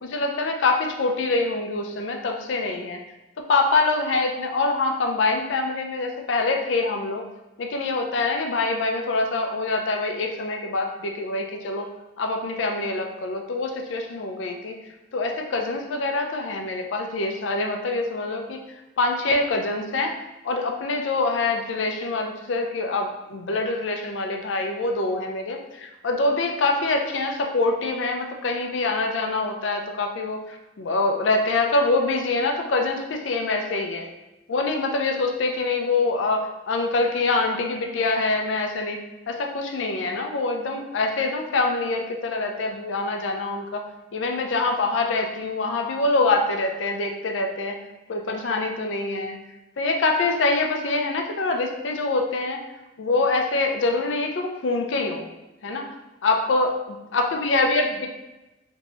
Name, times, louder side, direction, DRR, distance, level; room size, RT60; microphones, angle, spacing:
voice 1, 0.0-3.0 3.4-7.2 7.6-11.9 12.2-14.8 15.1-18.6 19.0-20.1 20.4-30.4 30.8-34.1 34.5-39.0 39.3-43.8 44.1-47.8 48.1-49.4 49.8-52.6 53.0-55.2 55.6-55.9 56.2-56.7 57.1-58.1, left 3 dB, 75° left, 3 dB, 0.5 m, -25 dB
3.9 x 2.8 x 2.4 m, 1.0 s
head